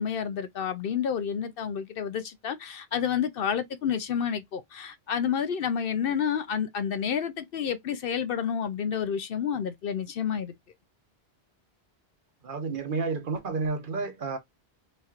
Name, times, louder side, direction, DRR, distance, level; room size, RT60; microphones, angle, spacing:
voice 1, 0.0-10.5, left 8 dB, 65° left, 0.7 m, -29 dB
voice 2, 12.4-14.4, right 4 dB, 55° right, 0.8 m, -30 dB
4.2 x 3.1 x 2.4 m
omnidirectional pair, 1.1 m